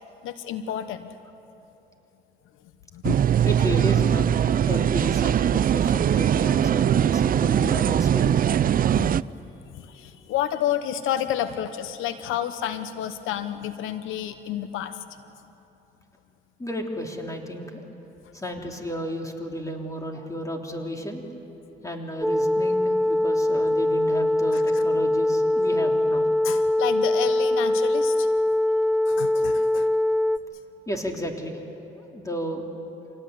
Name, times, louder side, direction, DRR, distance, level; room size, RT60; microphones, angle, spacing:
voice 1, 0.2-1.1 2.9-3.3 8.2-8.3 8.8-9.2 9.7-15.0 24.5-24.6 26.4-28.3 29.1-29.9, left 10 dB, 90° left, 11 dB, 1.0 m, -30 dB
sound 1, 3.0-9.2, right 9 dB, 45° right, 0.5 m, -21 dB
voice 2, 3.4-4.3 4.6-8.6 16.6-17.8 18.3-21.2 21.8-26.3 30.9-31.6 32.0-32.7, equal, 15° left, 2 dB, 3.4 m, -33 dB
sound 2, 22.2-30.4, left 1 dB, ahead, 0.6 m, -22 dB
26.5 x 18.5 x 9.4 m, 3.0 s
cardioid pair, 90°, 20 cm